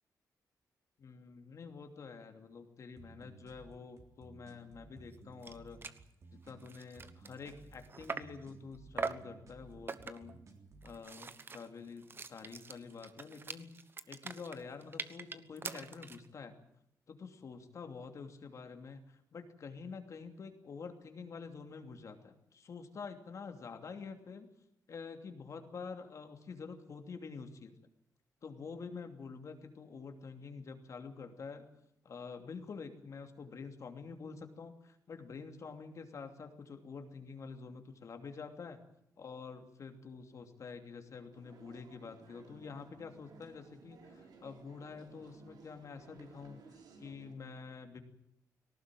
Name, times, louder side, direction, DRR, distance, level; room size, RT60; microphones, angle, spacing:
voice 1, 1.0-5.8 6.3-10.4 10.8-13.7 14.1-16.6 17.1-24.5 24.9-27.8 28.4-31.7 32.0-38.8 39.2-48.0, left 5 dB, 50° left, 6 dB, 2.8 m, -48 dB
sound 1, 3.0-11.0, right 3 dB, 50° right, 3.6 m, -57 dB
sound 2, 5.1-5.2 5.4-5.6 5.8-6.0 6.5-8.4 9.0-9.3 9.9-10.4 10.8-16.3, right 4 dB, 35° right, 1.1 m, -43 dB
sound 3, 41.3-47.3, right 4 dB, 80° right, 4.6 m, -58 dB
19.5 x 18.5 x 9.2 m, 0.78 s
wide cardioid pair, 130°, 7 cm